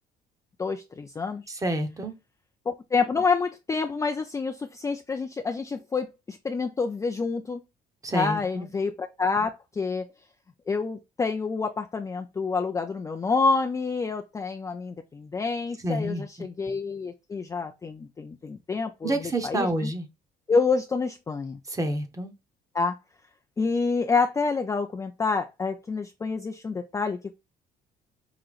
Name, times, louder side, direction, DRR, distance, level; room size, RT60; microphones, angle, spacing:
voice 1, 0.6-1.4 2.7-7.6 8.1-10.1 10.7-19.9 20.5-21.6 22.7-23.0 23.6-27.3, left 4 dB, 20° left, 0.4 m, -28 dB
voice 2, 1.5-2.1 8.0-8.7 15.8-16.3 19.0-20.1 21.7-22.3, right 1 dB, 20° right, 1.0 m, -28 dB
4.9 x 2.9 x 2.4 m
cardioid pair, 110°, 17 cm